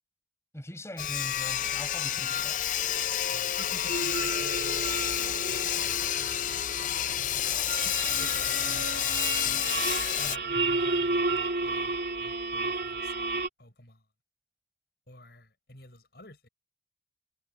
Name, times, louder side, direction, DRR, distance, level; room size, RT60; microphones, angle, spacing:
voice 1, 0.5-2.6 10.5-10.8, equal, 15° left, 5.4 m, -42 dB
Sawing, 1.0-10.4, left 11 dB, 45° left, 0.5 m, -29 dB
voice 2, 3.3-5.1 5.5-6.5 6.8-9.6 10.2-13.3 13.6-14.0 15.1-16.5, left 1 dB, 60° left, 6.3 m, -51 dB
sound 1, 3.9-13.5, right 3 dB, 60° right, 2.8 m, -32 dB
head